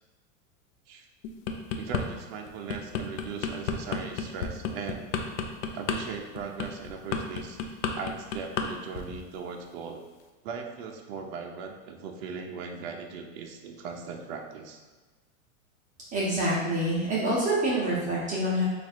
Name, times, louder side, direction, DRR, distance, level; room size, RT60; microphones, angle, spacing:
sound 1, 1.2-2.0 2.5-8.7 8.9-9.2, left 6 dB, 70° left, 0.6 m, -31 dB
voice 1, 1.8-5.1 5.7-7.6 7.9-10.0 10.4-14.8, right 5 dB, 50° right, 2 dB, 0.6 m, -39 dB
voice 2, 16.1-18.6, right 1 dB, 20° right, -7 dB, 0.8 m, -26 dB
3.1 x 2.5 x 4.3 m, 1.3 s
supercardioid pair, 130°, 40 cm